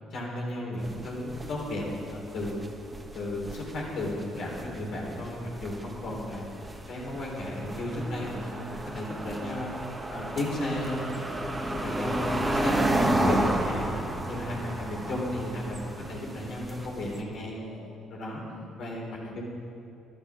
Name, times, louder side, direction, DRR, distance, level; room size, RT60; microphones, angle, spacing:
voice 1, 0.1-2.6 3.1-6.5 6.9-9.7 10.1-11.3 11.7-13.9 14.2-17.6 18.1-18.4 18.8-19.4, left 1 dB, 60° left, -2 dB, 3.8 m, -34 dB
sound 1, 0.8-17.2, right 1 dB, 20° right, 1.8 m, -32 dB
voice 2, 12.3-12.7 14.5-14.9 17.6-18.1 18.5-18.8 19.1-19.4, left 1 dB, 75° left, 1 dB, 1.7 m, -46 dB
12.0 x 12.0 x 6.2 m, 2.6 s
hypercardioid pair, 50°, 0 cm